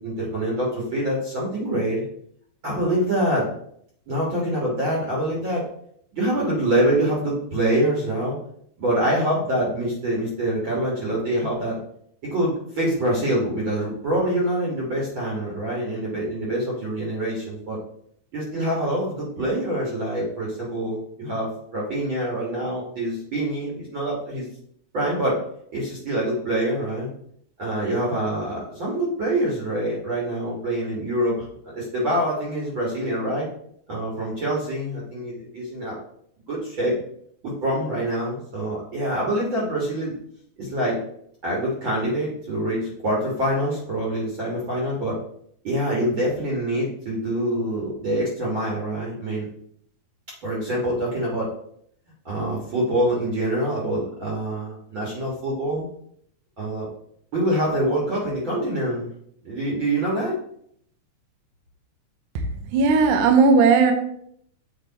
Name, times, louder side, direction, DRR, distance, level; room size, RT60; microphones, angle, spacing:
voice 1, 0.0-2.1 2.6-3.5 4.1-5.6 6.1-8.4 8.8-11.8 12.2-17.8 18.3-24.5 24.9-25.4 25.7-27.1 27.6-31.5 31.7-33.5 33.9-36.0 36.5-37.0 37.4-40.1 40.6-41.0 41.4-45.2 45.6-49.5 50.4-51.5 52.3-55.8 56.6-56.9 57.3-59.1 59.4-60.4, right 1 dB, 45° right, -4 dB, 1.9 m, -25 dB
voice 2, 62.7-63.9, right 4 dB, 80° right, 5 dB, 2.2 m, -16 dB
8.2 x 3.4 x 4.1 m, 0.68 s
omnidirectional pair, 3.7 m